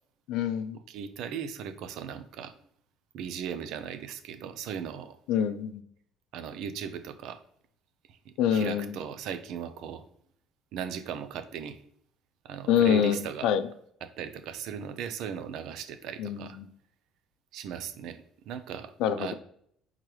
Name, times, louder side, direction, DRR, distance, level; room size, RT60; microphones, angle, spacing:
voice 1, 0.3-0.8 5.3-5.8 8.4-8.9 12.7-13.7 16.2-16.7 19.0-19.3, left 9 dB, 80° left, 11 dB, 0.4 m, -26 dB
voice 2, 0.9-2.5 3.1-5.2 6.3-7.4 8.3-10.0 10.7-11.8 12.4-13.5 14.0-16.6 17.5-18.9 19.2-19.3, right 8 dB, 70° right, 11 dB, 0.5 m, -37 dB
4.5 x 3.7 x 3.2 m, 0.65 s
cardioid pair, 150°, 0 cm